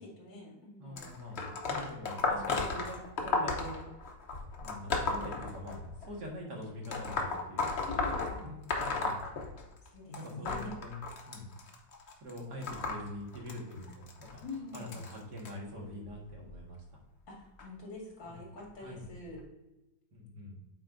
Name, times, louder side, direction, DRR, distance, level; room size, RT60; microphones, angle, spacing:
voice 1, 0.0-1.1 7.8-8.5 9.8-10.8 14.4-15.0 17.3-19.4, left 2 dB, 70° left, -3 dB, 2.9 m, -45 dB
voice 2, 0.8-3.8 4.6-7.7 8.1-9.2 10.1-11.0 11.3-11.5 12.2-14.4 14.7-17.0 18.2-18.4 18.8-19.1 20.1-20.6, left 1 dB, 60° right, -2 dB, 2.1 m, -44 dB
sound 1, 1.0-6.1 6.8-9.9 10.1-15.5 16.3-16.5 17.6-17.7 18.6-18.7 19.4-19.5, left 3 dB, 50° left, 0.8 m, -35 dB
8.6 x 4.3 x 2.6 m, 0.99 s
omnidirectional pair, 2.1 m